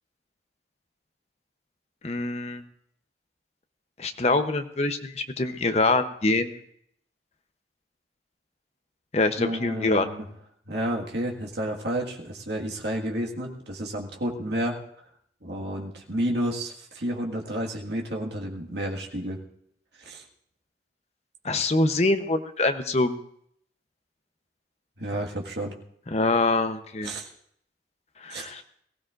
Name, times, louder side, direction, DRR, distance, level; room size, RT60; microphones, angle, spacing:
voice 1, 2.0-2.6 4.0-6.5 9.1-10.1 21.4-23.2 26.1-27.1 28.2-28.6, left 2 dB, 35° left, 8 dB, 0.8 m, -24 dB
voice 2, 9.4-10.2 10.7-14.8 15.4-19.4 20.0-20.2 25.0-25.7 27.0-27.3 28.3-28.5, right 1 dB, 70° right, 0 dB, 1.8 m, -31 dB
22.0 x 15.5 x 2.5 m, 0.69 s
head